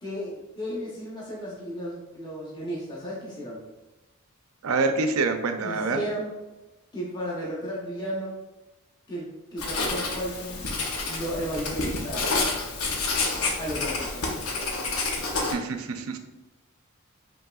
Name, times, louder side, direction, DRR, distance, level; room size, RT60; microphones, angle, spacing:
voice 1, 0.0-3.6 5.6-6.3 6.9-8.4 9.1-10.6 11.0-12.3 13.6-14.2, equal, 20° left, -6 dB, 0.8 m, -34 dB
voice 2, 4.6-6.0 15.4-16.2, right 3 dB, 85° right, 7 dB, 0.4 m, -26 dB
Writing, 9.6-15.5, left 3 dB, 85° left, 0.7 m, -29 dB
5.3 x 3.0 x 2.3 m, 1.1 s
head